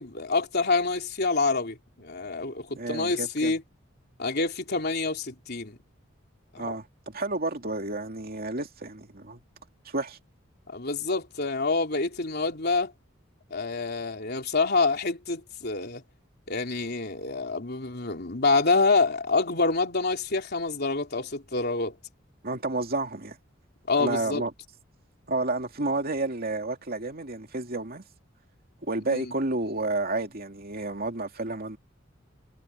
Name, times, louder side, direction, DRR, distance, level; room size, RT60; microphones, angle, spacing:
voice 1, 0.0-3.6 4.2-5.8 6.5-6.8 10.7-12.9 13.5-16.0 16.5-21.9 23.9-24.4 29.1-29.3, left 3 dB, 55° left, 3.5 m, -27 dB
voice 2, 2.8-3.5 6.6-9.4 9.8-10.2 22.4-23.4 24.0-24.5 25.3-28.0 28.8-31.8, right 2 dB, 50° right, 2.7 m, -30 dB
head